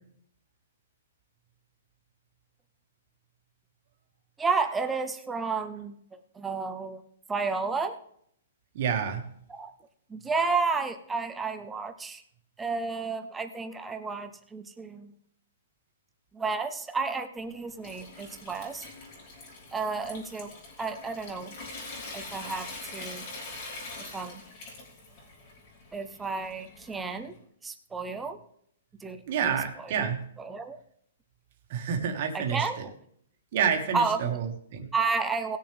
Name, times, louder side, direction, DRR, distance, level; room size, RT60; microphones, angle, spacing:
voice 1, 4.4-7.0 7.3-8.0 9.5-9.7 10.1-12.2 12.6-15.1 16.3-18.8 19.7-20.5 20.8-21.5 22.1-23.3 24.0-24.4 25.9-27.3 27.6-28.4 29.0-29.9 30.4-30.8 32.3-32.9 33.9-34.2 34.9-35.6, right 4 dB, 5° right, 8 dB, 0.6 m, -31 dB
voice 2, 8.7-9.2 29.3-30.2 31.7-32.9 33.5-34.9, right 7 dB, 40° right, 4 dB, 1.7 m, -29 dB
Water tap faucet / Sink (filling or washing) / Trickle dribble, 17.4-27.3, left 3 dB, 30° left, 3.1 m, -44 dB
18.5 x 6.8 x 3.5 m, 0.67 s
hypercardioid pair, 175°, 0 cm